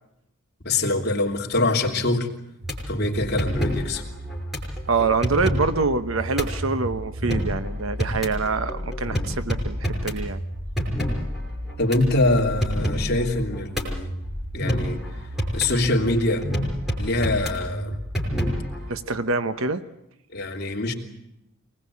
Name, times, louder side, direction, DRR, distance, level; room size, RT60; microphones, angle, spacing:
voice 1, 0.6-2.3 2.9-4.0 11.8-14.1 14.5-15.0 15.5-16.5 17.0-18.0 20.3-20.9, left 2 dB, 50° left, 1 dB, 3.2 m, -24 dB
sound 1, 2.6-18.9, equal, ahead, 5.7 m, -29 dB
voice 2, 4.9-10.4 18.9-19.8, right 4 dB, 70° right, 11 dB, 1.0 m, -25 dB
25.5 x 20.0 x 8.5 m, 0.86 s
head